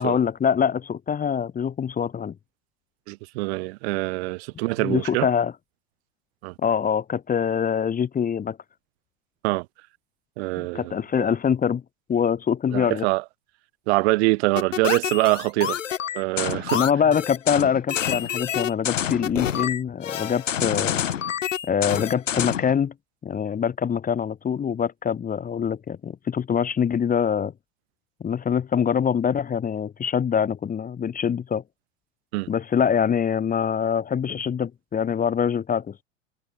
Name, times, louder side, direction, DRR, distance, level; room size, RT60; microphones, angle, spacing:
voice 1, 0.0-2.3 4.8-5.5 6.6-8.6 10.6-11.8 12.1-13.1 16.7-21.0 21.7-22.9 23.2-27.5 28.2-31.6 32.5-35.9, left 7 dB, 20° left, 2.0 m, -24 dB
voice 2, 3.1-5.3 6.4-6.5 9.4-9.7 10.4-10.9 12.7-13.2 13.9-15.8 16.1-16.8 32.3-32.5, right 24 dB, 55° right, 7.3 m, -24 dB
sound 1, 14.6-22.7, left 9 dB, 75° left, 2.3 m, -27 dB
figure-of-eight pair, 90°, 38 cm